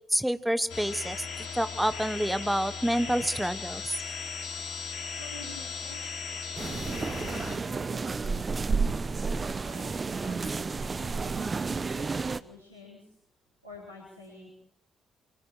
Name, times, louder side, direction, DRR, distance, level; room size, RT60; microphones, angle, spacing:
voice 1, 0.1-3.8 10.5-10.6, equal, 5° right, 13 dB, 1.3 m, -28 dB
sound 1, 0.7-7.6, left 5 dB, 65° left, 4.6 m, -37 dB
voice 2, 5.2-8.4 9.6-13.1 13.6-14.5, left 2 dB, 90° right, -5 dB, 4.6 m, -50 dB
sound 2, 6.6-12.4, right 4 dB, 35° right, 1.0 m, -31 dB
25.5 x 24.0 x 4.8 m, 0.66 s
figure-of-eight pair, 40°, 0 cm